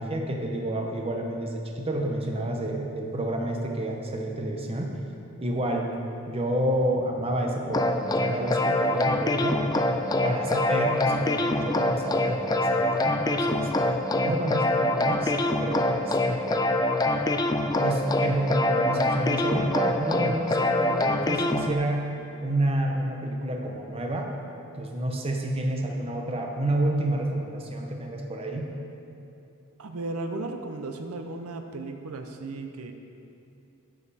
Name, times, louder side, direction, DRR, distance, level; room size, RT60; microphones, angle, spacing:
voice 1, 0.0-5.0 5.4-5.9 6.3-9.6 10.2-13.7 14.2-15.3 15.6-16.8 17.8-22.0 22.4-24.3 24.8-28.7, right 1 dB, 25° right, 1 dB, 0.8 m, -29 dB
sound 1, 7.7-21.7, left 1 dB, 15° left, 0.3 m, -25 dB
voice 2, 29.8-32.9, right 2 dB, 80° right, 6 dB, 0.6 m, -35 dB
11.0 x 7.5 x 4.2 m, 2.7 s
head